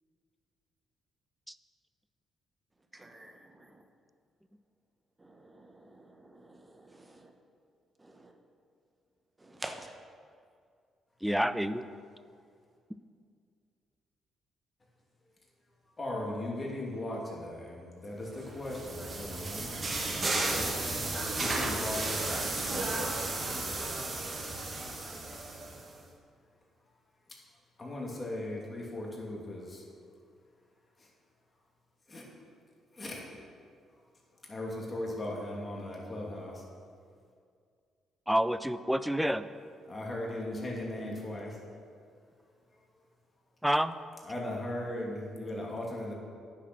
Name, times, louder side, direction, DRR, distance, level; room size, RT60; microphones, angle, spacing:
voice 1, 3.0-3.3 5.2-5.9 6.2-6.7 7.2-7.3 8.2-8.3 9.4-9.9, right 1 dB, 20° right, 4 dB, 1.0 m, -46 dB
voice 2, 11.2-11.9 38.3-39.4 43.6-44.0, equal, 5° right, 13 dB, 0.4 m, -28 dB
voice 3, 16.0-20.8 21.4-22.4 27.8-29.9 31.0-31.1 32.1-32.2 32.9-33.2 34.5-36.6 39.9-41.6 44.2-46.1, left 1 dB, 25° left, -3 dB, 2.6 m, -38 dB
sound 1, 18.3-25.9, right 2 dB, 35° right, 1.5 m, -33 dB
9.7 x 6.8 x 6.1 m, 2.2 s
cardioid pair, 90°, 0 cm